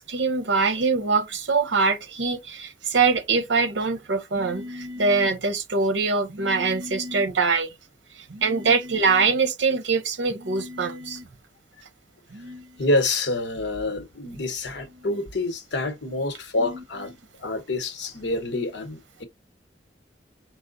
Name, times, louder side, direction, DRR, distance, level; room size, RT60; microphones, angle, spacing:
voice 1, 0.0-7.7 8.2-11.3 12.3-12.7 15.0-15.1 16.6-16.8, right 4 dB, 90° right, 0.8 m, -23 dB
voice 2, 12.8-17.1 17.4-19.2, left 2 dB, 70° left, 1.0 m, -27 dB
4.8 x 2.1 x 3.8 m
head